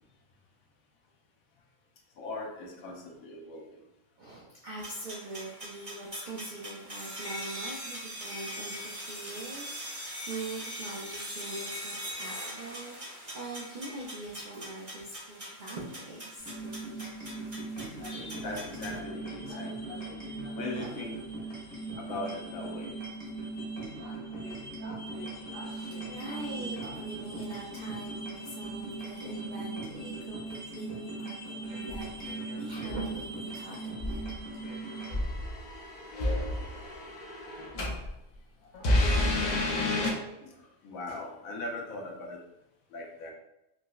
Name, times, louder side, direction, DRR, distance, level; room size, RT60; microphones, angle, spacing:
voice 1, 2.2-3.8 18.1-20.0 20.5-21.2 22.0-23.0 24.0-24.5 25.1-25.2 38.6-38.7 40.3-40.5 40.8-42.5 42.9-43.3, left 2 dB, 85° left, 1 dB, 1.1 m, -40 dB
voice 2, 4.2-16.6 25.6-34.2, right 2 dB, 75° right, -3 dB, 0.4 m, -42 dB
sound 1, 4.8-19.0, equal, 30° right, 0.9 m, -42 dB
sound 2, 16.4-35.1, right 2 dB, 5° left, 0.9 m, -39 dB
sound 3, 31.9-32.2 32.9-33.2 34.0-38.1 38.7-40.1, left 1 dB, 50° left, 0.5 m, -30 dB
4.8 x 2.0 x 2.3 m, 0.88 s
omnidirectional pair, 1.4 m